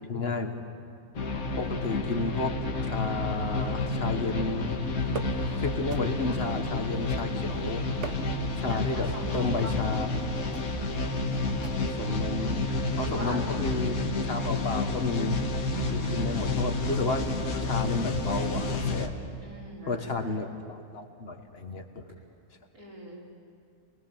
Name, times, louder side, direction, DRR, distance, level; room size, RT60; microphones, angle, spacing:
voice 1, 0.1-0.6 1.6-2.5 2.8-4.8 5.6-7.8 8.5-9.1 9.3-10.3 11.8-12.6 13.0-15.4 15.9-17.3 17.6-19.1 19.9-22.2, left 3 dB, 45° left, 5 dB, 1.7 m, -32 dB
sound 1, 1.1-19.1, left 2 dB, 75° left, 1.9 m, -30 dB
sound 2, 5.1-5.6 5.9-6.4 7.1-7.5 7.9-8.5 9.3-9.7 10.5-10.8 11.6-12.0, right 4 dB, 55° right, 1.4 m, -40 dB
voice 2, 8.7-9.7 12.7-13.9 15.7-16.6 19.4-20.4 22.7-23.2, equal, 80° right, -5 dB, 5.8 m, -42 dB
28.0 x 20.0 x 7.4 m, 2.4 s
omnidirectional pair, 1.5 m